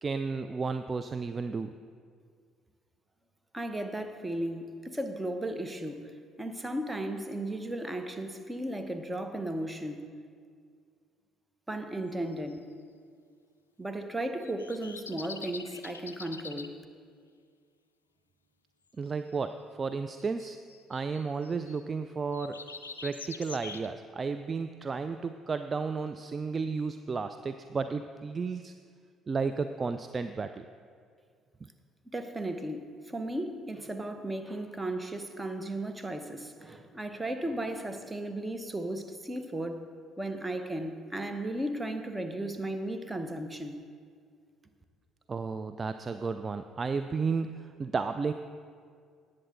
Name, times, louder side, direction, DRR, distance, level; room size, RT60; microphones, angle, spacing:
voice 1, 0.0-1.7 19.0-20.6 20.9-22.6 23.0-28.7 29.3-30.6 45.3-48.3, right 4 dB, 30° right, 9 dB, 0.4 m, -33 dB
voice 2, 3.5-6.1 6.4-10.0 11.7-12.7 13.8-16.7 32.1-32.8 33.1-39.8 40.2-43.8, right 1 dB, 15° right, 7 dB, 1.1 m, -35 dB
sound 1, 12.3-12.6 14.4-16.7 19.1-19.4 20.2-21.8 22.3-23.9, left 4 dB, 85° left, 0.3 m, -45 dB
18.5 x 7.6 x 3.8 m, 2.1 s
figure-of-eight pair, 50°, 0 cm